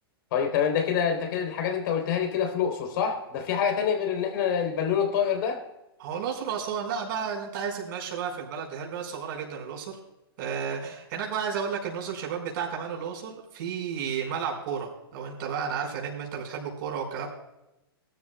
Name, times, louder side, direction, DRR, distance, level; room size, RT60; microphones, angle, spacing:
voice 1, 0.3-5.6, left 7 dB, 60° left, 4 dB, 3.5 m, -26 dB
voice 2, 6.0-10.0 10.4-17.3, right 7 dB, 55° right, -1 dB, 4.6 m, -32 dB
20.0 x 13.0 x 2.2 m, 0.92 s
hypercardioid pair, 125°, 13 cm